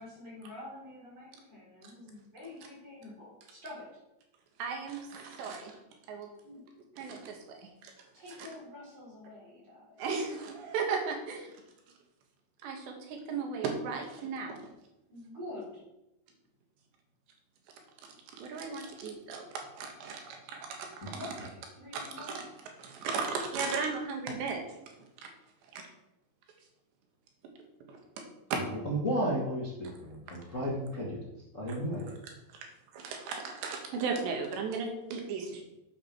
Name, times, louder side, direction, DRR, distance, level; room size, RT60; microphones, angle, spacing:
voice 1, 0.0-3.9 6.4-6.6 8.1-10.0 15.1-15.8 21.1-22.4, left 2 dB, 35° right, -5 dB, 5.1 m, -47 dB
voice 2, 4.6-5.8 6.1-6.3 7.0-7.9 8.4-8.5 10.0-11.6 12.6-14.6 18.3-21.1 21.9-22.4 22.8-24.6 25.7-25.8 27.9-28.2 28.5-28.6 31.7-31.8 32.9-35.6, right 5 dB, 75° right, 3 dB, 3.8 m, -36 dB
voice 3, 28.8-31.2 31.5-32.1, equal, 50° left, -3 dB, 0.9 m, -33 dB
8.7 x 8.5 x 6.1 m, 0.92 s
omnidirectional pair, 5.0 m